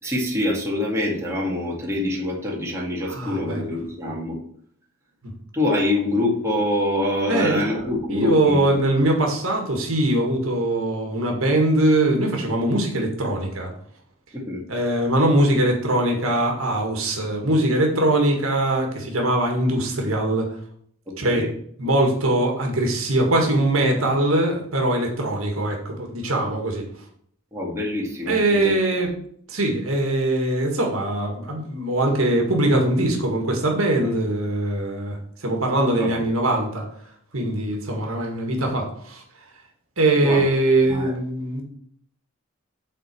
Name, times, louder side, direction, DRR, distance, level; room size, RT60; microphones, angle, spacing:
voice 1, 0.0-4.4 5.5-9.0 14.3-14.6 21.1-21.5 27.5-28.7 36.0-36.2 40.2-40.4 40.8-41.1, left 1 dB, 15° right, -3 dB, 2.0 m, -25 dB
voice 2, 3.1-3.7 7.3-7.7 8.1-13.7 14.7-20.5 21.2-21.5 21.8-26.9 28.3-29.1 29.5-36.9 37.3-39.2 40.0-41.6, right 1 dB, 70° right, 1 dB, 1.9 m, -22 dB
7.7 x 4.1 x 6.8 m, 0.65 s
head